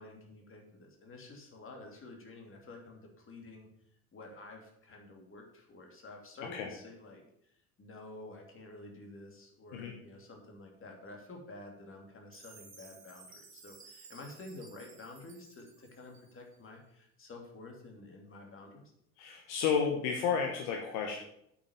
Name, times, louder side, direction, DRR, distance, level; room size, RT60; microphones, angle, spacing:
voice 1, 0.0-3.7 4.1-7.2 7.8-18.9, left 2 dB, 30° left, 2 dB, 2.8 m, -50 dB
Chime, 12.3-16.6, right 4 dB, 35° right, 2.7 m, -56 dB
voice 2, 19.2-21.2, left 6 dB, 60° left, 2 dB, 1.5 m, -31 dB
8.4 x 6.2 x 7.1 m, 0.73 s
figure-of-eight pair, 65°, 43 cm